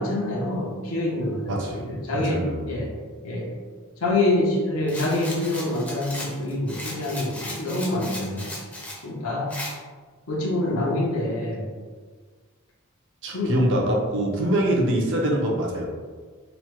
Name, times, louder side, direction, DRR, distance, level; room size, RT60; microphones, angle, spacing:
voice 1, 0.0-2.9 3.2-3.5 4.0-8.5 9.0-9.6 10.3-11.7 13.3-13.6, left 2 dB, 75° left, -2 dB, 0.7 m, -26 dB
voice 2, 1.5-1.8 2.1-2.7 13.2-15.9, right 1 dB, 60° right, -1 dB, 0.6 m, -24 dB
Rattle, 4.9-9.0 9.5-9.7, left 1 dB, 10° left, 0.5 m, -36 dB
3.0 x 2.1 x 3.0 m, 1.5 s
head